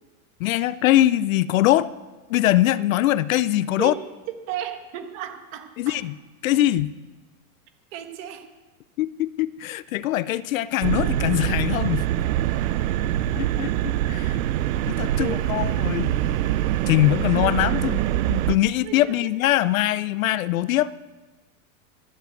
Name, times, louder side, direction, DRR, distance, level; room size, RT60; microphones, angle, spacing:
voice 1, 0.4-1.9 2.3-3.9 5.8-6.2 6.4-6.9 9.0-12.1 13.4-13.7 14.1-14.4 14.9-16.4 16.9-20.9, left 14 dB, 70° left, 18 dB, 0.6 m, -22 dB
voice 2, 4.5-6.0 7.9-8.4 13.3-13.7 15.2-15.9 17.4-17.5 18.8-19.3, right 10 dB, 30° right, 6 dB, 1.4 m, -35 dB
sound 1, 10.8-18.6, right 13 dB, 70° right, 0.6 m, -24 dB
13.5 x 7.7 x 7.9 m, 1.2 s
supercardioid pair, 175°, 42 cm